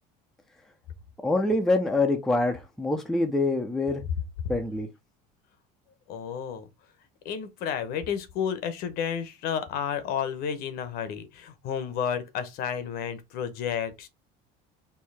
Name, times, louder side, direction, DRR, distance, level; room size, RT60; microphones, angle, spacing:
voice 1, 1.2-4.0 4.5-4.9, left 2 dB, ahead, 0.5 m, -25 dB
voice 2, 6.1-6.7 7.2-14.1, left 8 dB, 55° left, 0.8 m, -31 dB
4.5 x 2.8 x 3.3 m
cardioid pair, 160°, 19 cm